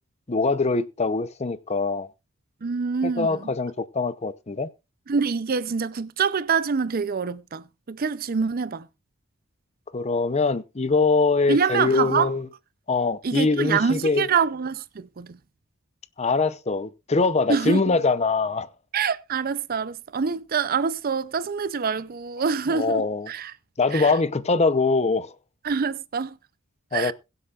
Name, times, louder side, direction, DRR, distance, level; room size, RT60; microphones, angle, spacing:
voice 1, 0.3-2.1 3.0-4.7 9.9-12.5 12.9-14.3 16.2-18.7 22.7-23.3 23.8-25.3 26.9-27.1, left 3 dB, 30° left, 0.7 m, -23 dB
voice 2, 2.6-3.5 5.1-8.9 11.5-12.3 13.2-15.4 17.5-17.8 18.9-23.5 23.9-24.1 25.6-26.4 26.9-27.1, right 5 dB, 45° right, 0.5 m, -25 dB
22.0 x 8.0 x 2.4 m
head